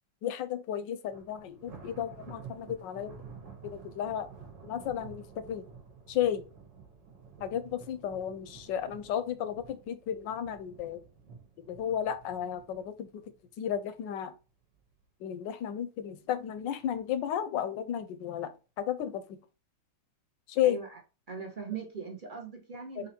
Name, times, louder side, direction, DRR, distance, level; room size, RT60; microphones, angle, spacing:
voice 1, 0.2-3.1 3.6-4.3 4.6-5.7 6.1-6.4 7.4-11.0 11.7-13.2 13.6-14.3 15.2-18.5 18.8-19.4 20.5-20.8 23.0-23.1, left 10 dB, 75° left, 1.2 m, -33 dB
Thunder, 1.1-14.4 14.7-15.0 15.4-15.5 16.4-17.0, right 6 dB, 65° right, 1.7 m, -51 dB
voice 2, 20.6-21.0 21.3-23.1, right 5 dB, 40° right, 0.7 m, -40 dB
4.4 x 2.7 x 4.1 m
omnidirectional pair, 2.2 m